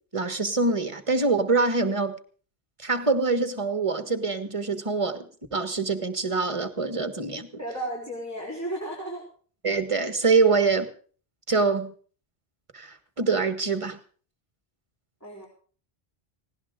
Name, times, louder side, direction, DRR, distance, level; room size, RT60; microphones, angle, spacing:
voice 1, 0.1-2.1 2.8-5.2 5.5-7.5 9.6-10.9 11.5-11.9 12.7-14.0, right 4 dB, 30° right, 9 dB, 1.7 m, -24 dB
voice 2, 7.6-9.3 10.5-10.6 15.2-15.5, right 1 dB, 15° left, -3 dB, 4.3 m, -34 dB
18.5 x 17.5 x 3.8 m, 0.43 s
omnidirectional pair, 1.0 m